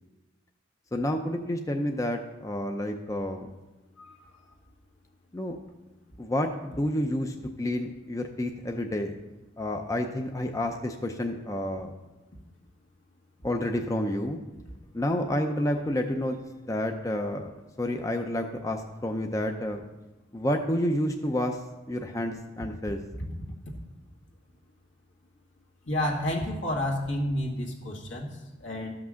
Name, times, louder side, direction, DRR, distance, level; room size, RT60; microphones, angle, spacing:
voice 1, 0.9-3.5 5.3-5.6 6.2-9.1 9.6-11.9 13.4-14.4 14.9-16.4 16.7-19.8 20.3-21.6 21.9-23.0, left 1 dB, 15° left, 4 dB, 0.5 m, -29 dB
voice 2, 4.0-4.5 25.9-28.9, left 1 dB, 70° left, 0 dB, 1.9 m, -31 dB
13.0 x 6.0 x 6.3 m, 1.1 s
head